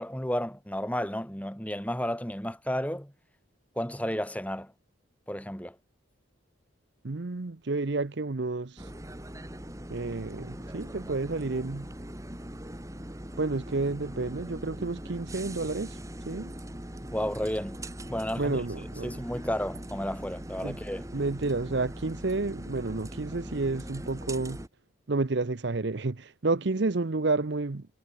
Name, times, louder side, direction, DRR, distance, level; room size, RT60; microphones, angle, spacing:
voice 1, 0.0-3.1 3.8-4.7 5.3-5.8 17.1-17.8 18.1-18.6 19.0-21.1, equal, 5° left, 4.1 m, -32 dB
voice 2, 7.0-8.9 9.9-11.9 13.4-16.0 16.3-16.5 18.4-19.3 20.6-20.8 21.1-24.6 25.1-27.9, right 3 dB, 55° right, 0.7 m, -30 dB
sound 1, 8.8-24.7, right 1 dB, 15° right, 2.3 m, -41 dB
head